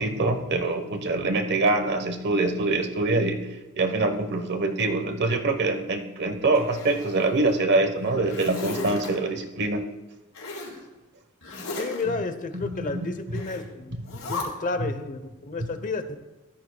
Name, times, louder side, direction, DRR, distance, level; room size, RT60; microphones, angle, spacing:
voice 1, 0.0-3.5 3.8-9.8 12.1-12.2 12.5-13.4 13.9-14.1 14.8-14.9 15.6-15.7, right 2 dB, 55° right, 6 dB, 1.1 m, -25 dB
Zipper (clothing), 6.5-7.5 8.0-9.1 10.3-10.8 11.4-12.0 13.3-13.6 14.0-14.4, left 3 dB, 85° left, 4.0 m, -35 dB
voice 2, 11.8-14.0 14.3-16.2, left 3 dB, 40° left, 9 dB, 0.8 m, -31 dB
15.0 x 13.0 x 2.3 m, 1.1 s
head